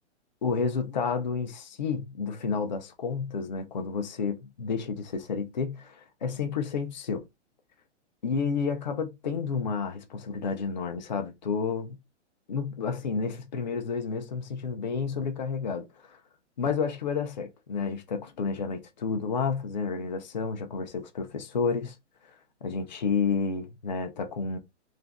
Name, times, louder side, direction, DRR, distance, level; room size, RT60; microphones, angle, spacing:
voice 1, 0.4-7.2 8.2-12.0 12.5-16.2 16.6-21.9 22.6-24.6, left 5 dB, 40° left, 0.4 m, -30 dB
2.4 x 2.1 x 3.4 m
hypercardioid pair, 180°, 36 cm